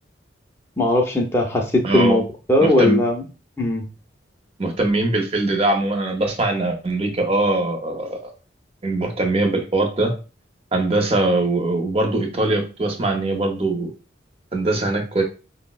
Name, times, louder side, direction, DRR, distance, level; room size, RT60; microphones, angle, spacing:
voice 1, 0.8-2.2 2.5-3.2 3.6-3.8, left 1 dB, 15° left, 0 dB, 0.4 m, -18 dB
voice 2, 1.8-2.2 2.6-3.0 4.6-8.2 8.8-10.2 10.7-13.9 14.5-15.2, right 2 dB, 30° right, 3 dB, 0.5 m, -21 dB
3.9 x 2.0 x 2.3 m, 0.33 s
head